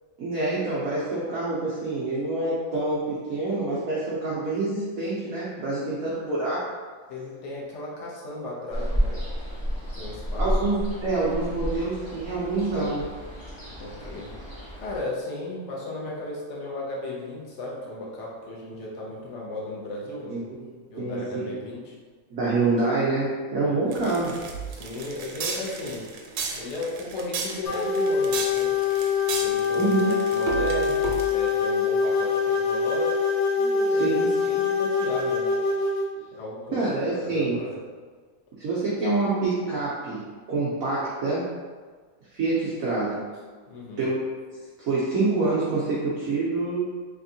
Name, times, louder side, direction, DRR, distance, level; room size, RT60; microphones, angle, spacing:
voice 1, 0.2-6.6 10.4-13.0 20.3-21.5 22.3-24.3 29.7-30.1 33.9-34.3 36.7-37.6 38.6-41.5 42.3-43.2 44.0-44.2 44.9-46.9, right 3 dB, 65° right, -7 dB, 0.9 m, -26 dB
voice 2, 7.1-9.2 10.0-10.6 13.8-14.3 14.8-20.4 20.9-21.9 23.6-23.7 24.7-26.1 26.6-28.7 29.4-33.2 33.6-34.1 34.4-35.5 36.3-36.8 37.1-37.8 43.7-44.0, left 2 dB, 85° left, -4 dB, 0.6 m, -35 dB
Ocean, 8.7-15.0, equal, 30° left, 0.5 m, -31 dB
sound 1, 23.9-31.6, right 5 dB, 85° right, 1.4 m, -33 dB
sound 2, 27.7-36.0, left 5 dB, 55° left, 1.0 m, -24 dB
3.5 x 3.4 x 2.7 m, 1.5 s
omnidirectional pair, 2.2 m